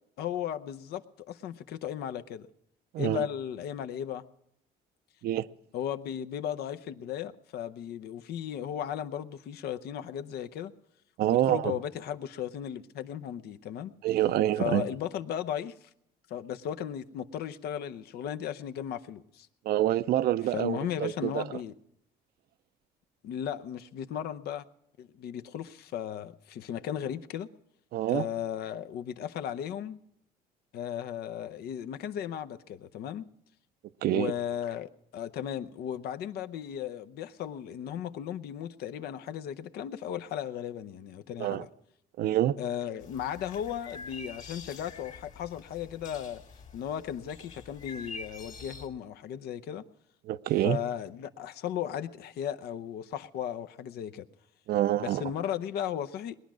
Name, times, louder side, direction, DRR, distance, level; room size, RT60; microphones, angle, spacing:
voice 1, 0.2-2.5 3.0-4.2 5.7-10.7 11.2-13.9 14.6-15.9 16.3-19.5 20.5-21.7 23.2-24.6 25.0-27.5 28.1-30.0 30.7-33.3 34.1-41.7 42.6-46.4 46.7-49.8 50.6-54.3 55.0-56.3, left 9 dB, 70° left, 0.7 m, -36 dB
voice 2, 2.9-3.3 5.2-5.5 11.2-11.7 14.0-14.9 19.6-21.4 27.9-28.3 34.0-34.3 41.4-41.7 42.2-42.6 50.3-50.8 54.7-55.2, right 13 dB, 65° right, 0.5 m, -26 dB
sound 1, 43.0-48.9, left 4 dB, 50° left, 2.2 m, -46 dB
20.0 x 10.5 x 6.1 m
cardioid pair, 110°, 17 cm